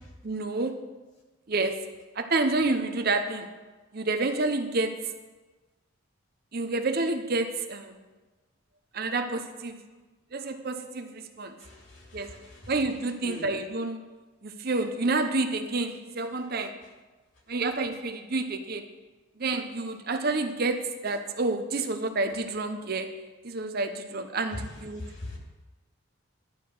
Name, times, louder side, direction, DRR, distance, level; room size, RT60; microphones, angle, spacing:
voice 1, 0.2-0.8 1.5-1.8 2.2-3.5 3.9-5.1 6.5-8.0 8.9-9.8 10.3-11.6 12.1-12.4 12.7-14.0 14.4-16.7 17.5-18.8 19.4-23.1 23.4-25.1, right 3 dB, 45° right, 7 dB, 0.7 m, -29 dB
voice 2, 11.6-12.7 13.2-13.5 24.5-24.6 24.9-25.4, left 1 dB, 60° left, -1 dB, 2.6 m, -41 dB
11.0 x 4.8 x 7.9 m, 1.2 s
head